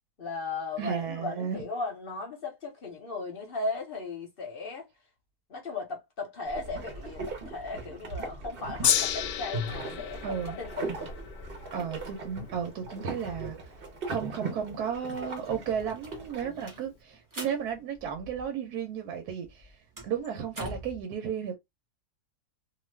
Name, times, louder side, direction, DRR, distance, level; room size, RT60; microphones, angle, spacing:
voice 1, 0.2-4.9 5.5-11.1 16.4-16.6, left 3 dB, 45° left, 0.8 m, -37 dB
voice 2, 0.8-1.6 10.2-10.6 11.7-13.8 14.1-21.6, right 7 dB, 80° right, 1.1 m, -34 dB
sound 1, 6.4-16.4, right 2 dB, 45° right, 0.8 m, -39 dB
Gong, 8.8-15.2 16.0-16.1, left 10 dB, 75° left, 1.1 m, -34 dB
sound 2, 14.5-14.6 14.9-18.8 19.1-21.0, right 1 dB, 20° right, 0.6 m, -45 dB
2.6 x 2.4 x 3.1 m
omnidirectional pair, 1.7 m